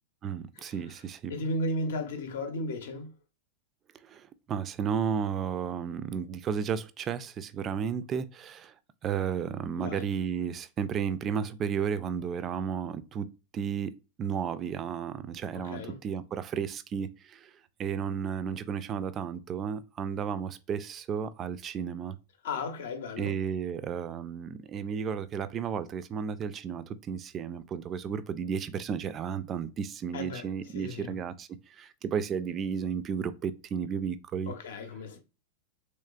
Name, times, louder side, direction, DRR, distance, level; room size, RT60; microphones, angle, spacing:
voice 1, 0.2-1.3 4.0-8.7 9.0-13.3 13.5-13.9 14.2-17.5 17.8-22.2 23.2-34.5, right 7 dB, 30° right, 0.3 m, -33 dB
voice 2, 1.3-3.1 9.8-10.1 15.5-16.0 22.4-23.4 30.1-30.5 30.7-31.2 34.5-35.2, left 1 dB, 60° left, 0.7 m, -35 dB
3.1 x 3.1 x 2.3 m
figure-of-eight pair, 90°, 0 cm